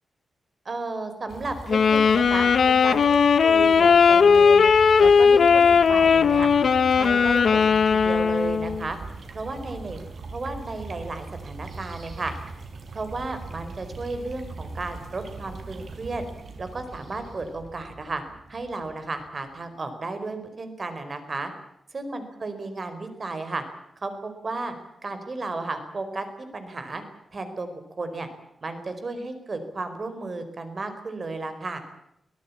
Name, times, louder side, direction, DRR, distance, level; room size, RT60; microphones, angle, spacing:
voice 1, 0.6-4.7 5.0-6.5 6.9-9.0 9.3-10.0 10.3-12.3 12.9-16.2 16.6-18.2 18.5-21.5 21.9-23.6 24.0-24.7 25.0-26.3 26.5-27.0 27.3-28.3 28.6-31.8, right 3 dB, 40° right, 8 dB, 4.5 m, -33 dB
sound 1, 1.3-19.5, right 4 dB, 60° right, 4.9 m, -40 dB
Wind instrument woodwind instrument, 1.7-8.9, left 6 dB, 60° left, 1.1 m, -18 dB
23.5 x 18.0 x 8.5 m, 0.78 s
wide cardioid pair, 120°, 0 cm